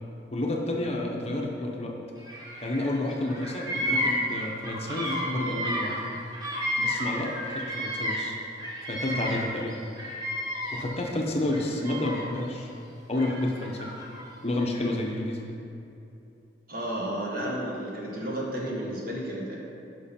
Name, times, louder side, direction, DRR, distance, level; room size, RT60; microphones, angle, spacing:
voice 1, 0.3-2.0 2.6-6.0 6.8-8.4 8.9-9.7 10.7-12.7 13.1-13.9 14.4-15.6, left 1 dB, 35° left, 0 dB, 0.8 m, -30 dB
Bird vocalization bird call bird song, 2.2-3.0 3.2-8.3 8.6-11.0 11.5-12.4 13.2-14.2, equal, 20° right, 1.1 m, -32 dB
voice 2, 16.7-19.6, right 1 dB, 50° right, -3 dB, 1.5 m, -32 dB
11.0 x 5.3 x 4.3 m, 2.7 s
head